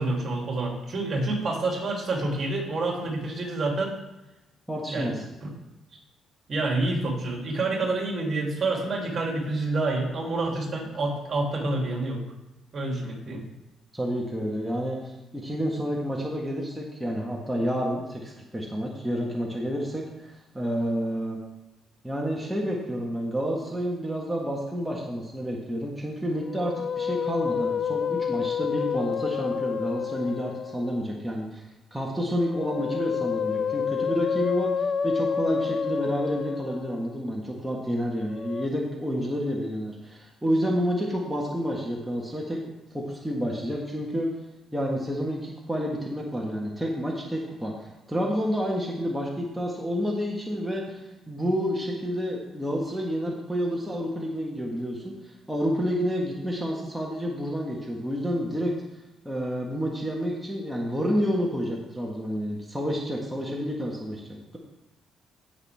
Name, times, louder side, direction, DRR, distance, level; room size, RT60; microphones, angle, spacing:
voice 1, 0.0-4.0 4.9-5.1 5.4-5.5 6.5-12.2 12.7-13.4, right 2 dB, 40° right, -1 dB, 3.0 m, -28 dB
voice 2, 4.7-5.2 13.9-21.4 22.0-31.6 31.9-42.6 42.9-44.3 44.7-55.1 55.5-58.7 59.2-64.6, equal, 5° right, -3 dB, 1.5 m, -29 dB
Musical instrument, 26.4-31.0 32.3-37.1 38.3-38.7, left 7 dB, 45° left, 0.3 m, -29 dB
16.0 x 5.9 x 3.5 m, 0.99 s
cardioid pair, 120°, 0 cm